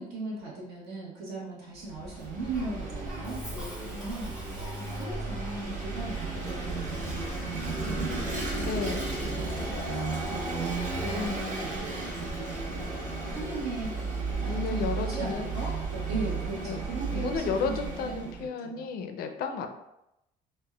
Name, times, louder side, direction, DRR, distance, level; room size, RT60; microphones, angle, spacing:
voice 1, 0.0-4.3 4.8-8.1 8.6-8.9 9.2-9.7 10.3-12.1 13.3-18.8, right 2 dB, 75° right, -4 dB, 1.0 m, -38 dB
Vehicle / Engine, 1.8-18.4, right 3 dB, 50° right, 1.1 m, -33 dB
Cough, 2.5-5.4, equal, 5° right, 0.6 m, -45 dB
voice 2, 8.6-9.1 14.5-15.5 16.5-16.8 17.1-19.7, left 5 dB, 65° left, 6 dB, 0.4 m, -33 dB
3.3 x 2.1 x 2.2 m, 0.87 s
cardioid pair, 110°, 17 cm